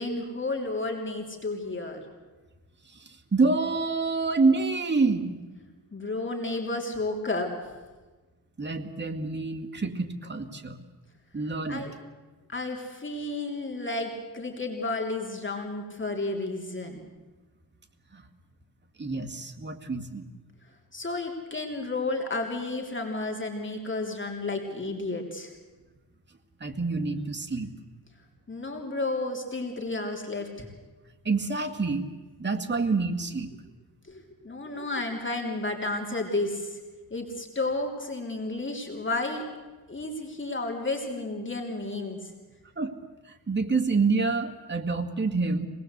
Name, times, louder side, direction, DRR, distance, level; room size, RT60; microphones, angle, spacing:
voice 1, 0.0-2.0 5.9-7.5 11.7-11.9 12.5-17.0 20.9-25.5 28.5-30.7 34.1-36.8 37.1-39.4 39.9-42.3, left 2 dB, 30° left, 2 dB, 3.3 m, -32 dB
voice 2, 3.0-5.6 8.6-10.8 11.3-11.8 18.1-18.2 19.0-20.3 26.6-27.7 31.2-32.1 32.4-33.5 42.8-42.9 43.5-45.7, right 3 dB, 30° right, 4 dB, 2.0 m, -27 dB
25.5 x 19.0 x 8.2 m, 1.3 s
wide cardioid pair, 110°, 37 cm